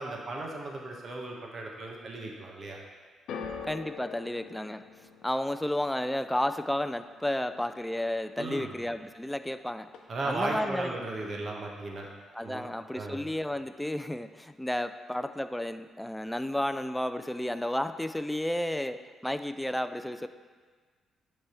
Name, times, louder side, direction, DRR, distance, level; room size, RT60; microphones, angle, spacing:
voice 1, 0.0-2.8 8.4-8.7 10.1-12.1 12.4-12.7 12.9-13.2, right 2 dB, 45° right, 0 dB, 1.0 m, -36 dB
sound 1, 3.3-9.6 9.8-10.5 11.2-11.3, left 6 dB, 75° left, 0.6 m, -46 dB
voice 2, 3.6-4.8 5.2-9.9 10.2-11.0 12.3-20.3, left 1 dB, 5° left, 10 dB, 0.3 m, -32 dB
10.0 x 3.4 x 4.3 m, 1.5 s
cardioid pair, 90°, 0 cm